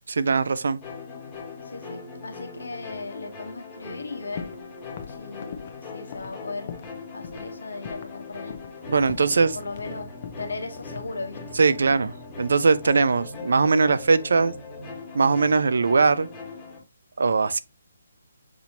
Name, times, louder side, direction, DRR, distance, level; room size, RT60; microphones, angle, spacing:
voice 1, 0.1-0.8 8.9-9.6 11.6-14.5 15.1-16.3 17.2-17.6, right 4 dB, 65° right, 0.4 m, -21 dB
sound 1, 0.8-16.8, left 4 dB, 15° left, 1.5 m, -40 dB
voice 2, 1.6-4.5 5.1-6.8 7.1-8.6 9.5-10.1 10.4-11.6, left 3 dB, 80° left, 1.1 m, -37 dB
sound 2, 4.4-4.7 5.0-7.0 7.2-7.5 7.9-8.2 8.5-8.8 9.1-9.9 10.2-11.6 12.5-13.5 13.7-14.2, left 7 dB, 30° left, 0.5 m, -41 dB
6.1 x 2.7 x 2.8 m
hypercardioid pair, 170°, 0 cm